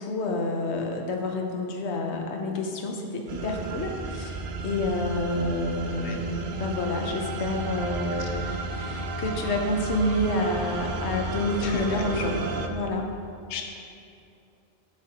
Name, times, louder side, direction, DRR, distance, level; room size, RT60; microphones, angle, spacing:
voice 1, 0.0-12.4 12.7-13.1, left 2 dB, 90° left, 2 dB, 1.0 m, -29 dB
sound 1, 3.3-12.7, right 4 dB, 60° right, 0.6 m, -32 dB
voice 2, 6.0-6.2 8.2-8.3 11.6-11.8 13.5-13.8, left 7 dB, 65° left, 3 dB, 0.8 m, -35 dB
6.3 x 6.2 x 4.1 m, 2.6 s
omnidirectional pair, 1.1 m